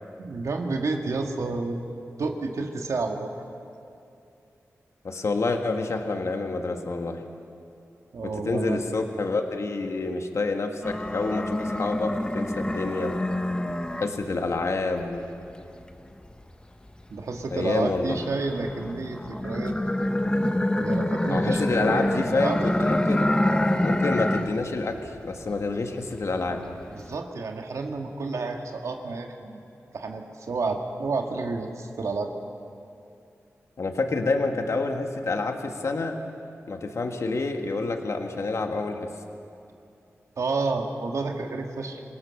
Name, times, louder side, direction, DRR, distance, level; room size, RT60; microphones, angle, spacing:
voice 1, 0.2-1.8 2.2-3.4 8.1-8.8 17.1-19.7 20.8-22.7 26.9-29.6 29.9-32.3 40.4-42.0, right 3 dB, 80° right, 3 dB, 1.9 m, -30 dB
voice 2, 5.0-7.2 8.2-13.2 14.0-15.3 17.5-18.2 21.3-23.3 23.8-26.6 33.8-36.2 36.7-39.1, left 3 dB, 65° left, 4 dB, 1.7 m, -28 dB
sound 1, 10.8-14.5 14.9-17.2 17.7-24.7 25.0-25.7 26.1-27.1, left 1 dB, 15° left, 1.1 m, -27 dB
27.0 x 18.0 x 6.6 m, 2.6 s
cardioid pair, 60°, 5 cm